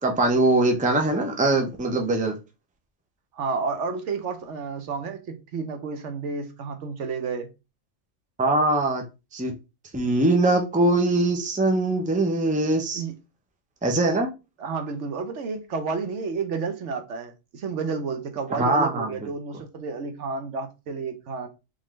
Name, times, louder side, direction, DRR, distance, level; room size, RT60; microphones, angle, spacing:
voice 1, 0.0-2.3 8.4-9.0 9.3-9.5 9.9-13.0 13.8-14.3 18.5-19.1, right 2 dB, 10° right, 0.6 m, -22 dB
voice 2, 3.3-7.5 12.9-13.1 14.6-21.5, right 4 dB, 75° right, 1.1 m, -31 dB
3.8 x 3.5 x 3.2 m
omnidirectional pair, 1.3 m